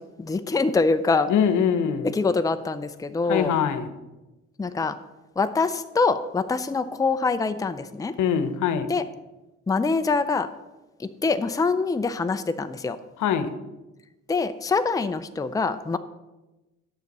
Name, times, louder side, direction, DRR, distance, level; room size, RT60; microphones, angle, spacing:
voice 1, 0.0-1.3 2.0-3.6 4.6-5.0 5.4-8.1 8.9-9.0 9.7-10.5 11.0-13.0 14.3-16.0, left 4 dB, 10° left, 9 dB, 0.5 m, -24 dB
voice 2, 1.3-2.1 3.3-3.9 8.2-8.9 13.2-13.5, left 8 dB, 80° left, 10 dB, 0.9 m, -23 dB
9.2 x 6.8 x 5.3 m, 1.1 s
cardioid pair, 90°, 30 cm